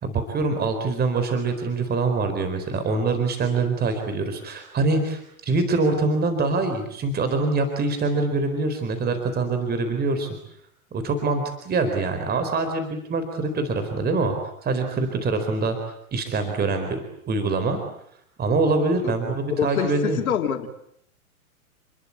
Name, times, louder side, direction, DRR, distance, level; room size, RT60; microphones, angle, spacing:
voice 1, 0.0-10.3 10.9-14.3 14.6-15.8 16.1-17.8 18.4-20.2, right 3 dB, 20° right, 7 dB, 4.2 m, -24 dB
voice 2, 19.6-20.7, left 8 dB, 75° left, 5 dB, 3.4 m, -25 dB
29.5 x 21.5 x 8.6 m, 0.71 s
hypercardioid pair, 120°, 43 cm